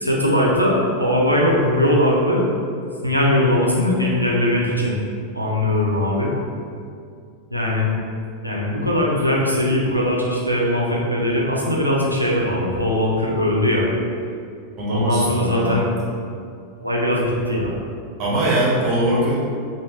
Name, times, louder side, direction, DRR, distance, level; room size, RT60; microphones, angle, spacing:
voice 1, 0.0-2.5 3.0-5.0 5.3-6.3 7.5-7.9 8.4-13.8 14.9-15.9 16.8-17.7, left 1 dB, 90° right, -4 dB, 0.5 m, -20 dB
voice 2, 14.8-15.8 18.2-19.4, right 1 dB, 35° right, -6 dB, 1.0 m, -21 dB
3.1 x 2.5 x 2.9 m, 2.3 s
figure-of-eight pair, 90°, 0 cm